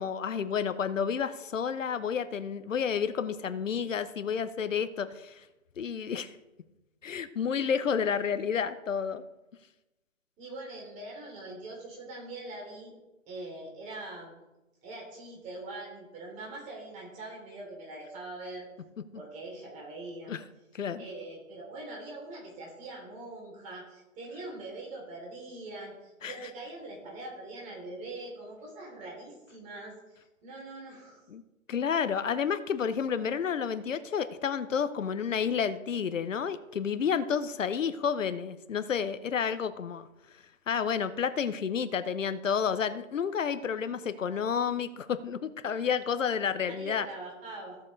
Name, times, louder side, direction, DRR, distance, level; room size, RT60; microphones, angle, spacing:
voice 1, 0.0-5.3 5.8-6.3 7.0-9.2 20.3-20.4 20.7-21.0 26.2-26.4 31.3-31.4 31.7-40.1 40.7-47.1, left 7 dB, 65° left, 13 dB, 0.8 m, -30 dB
voice 2, 10.4-12.9 13.3-14.3 14.8-18.7 19.1-20.3 21.0-31.2 46.8-47.8, right 2 dB, 15° right, -2 dB, 3.2 m, -43 dB
15.5 x 7.2 x 3.3 m, 1.0 s
figure-of-eight pair, 145°, 41 cm